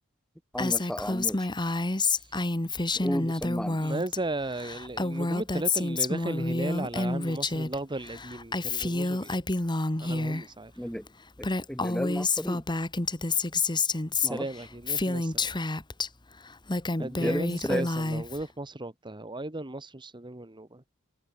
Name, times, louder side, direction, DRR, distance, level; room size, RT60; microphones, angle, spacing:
voice 1, 0.5-1.5 3.0-3.8 10.8-11.1 11.4-12.6 14.2-14.4 17.0-17.8, equal, 5° left, 3.3 m, -33 dB
Female speech woman speaking, 0.6-4.2 4.4-7.8 8.0-10.4 11.1-11.2 11.4-16.1 16.5-18.4, left 3 dB, 20° left, 1.4 m, -29 dB
voice 2, 3.7-9.4 10.0-10.9 14.1-15.5 17.0-20.9, right 2 dB, 20° right, 1.6 m, -36 dB
head